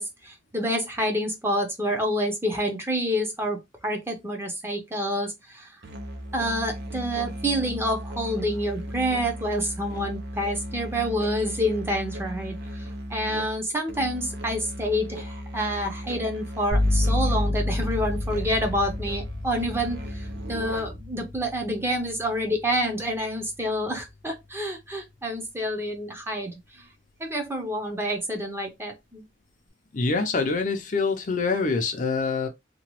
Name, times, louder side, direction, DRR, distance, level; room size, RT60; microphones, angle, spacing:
voice 1, 0.0-3.6 3.8-5.7 6.3-26.8 27.2-29.2, equal, 15° right, 0.7 m, -28 dB
Musical instrument, 5.8-21.1, equal, 70° right, 0.7 m, -36 dB
sound 1, 16.7-24.4, left 1 dB, 40° right, 1.2 m, -30 dB
voice 2, 29.9-32.5, left 4 dB, 45° left, 0.5 m, -25 dB
2.9 x 2.2 x 2.9 m
head